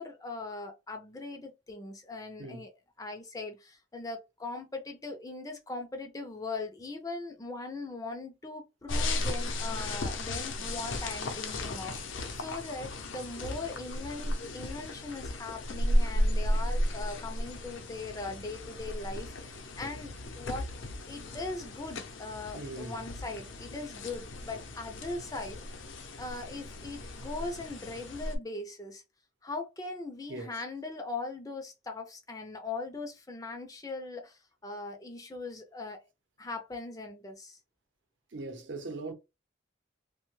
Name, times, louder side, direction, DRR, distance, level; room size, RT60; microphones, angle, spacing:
voice 1, 0.0-2.7 3.0-20.7 21.1-25.6 26.2-29.0 29.4-36.0 36.4-37.6, left 3 dB, 20° left, 0.4 m, -40 dB
sound 1, 8.9-28.4, left 1 dB, 80° left, 0.6 m, -34 dB
voice 2, 22.5-23.0 30.3-30.6 38.3-39.1, right 2 dB, 75° right, 0.7 m, -40 dB
2.8 x 2.1 x 3.1 m
head